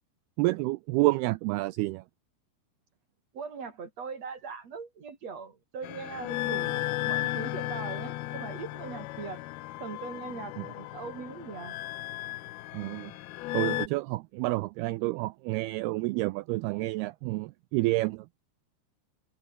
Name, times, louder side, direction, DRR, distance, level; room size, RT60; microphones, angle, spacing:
voice 1, 0.4-2.0 10.6-10.7 12.7-13.1 13.5-18.3, right 21 dB, 90° right, 2.2 m, -29 dB
voice 2, 3.3-9.4 9.8-11.8, right 5 dB, 40° right, 3.6 m, -40 dB
sound 1, 5.8-13.9, left 17 dB, 75° left, 2.5 m, -35 dB
omnidirectional pair, 5.1 m